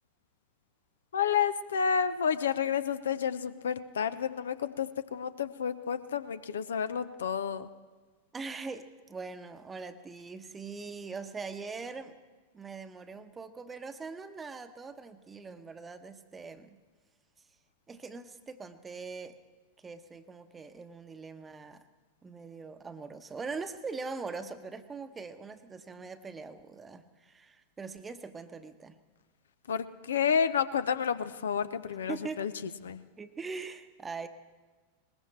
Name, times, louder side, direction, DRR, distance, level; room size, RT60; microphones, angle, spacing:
voice 1, 1.1-7.7 29.7-32.5 32.8-33.0, left 7 dB, 65° left, 13 dB, 0.7 m, -30 dB
voice 2, 8.3-12.2 12.5-16.8 17.9-19.4 19.8-21.9 22.2-29.0 32.1-32.5 33.2-34.3, right 4 dB, 15° right, 10 dB, 1.0 m, -42 dB
21.0 x 20.5 x 3.3 m, 1.3 s
figure-of-eight pair, 90°, 0 cm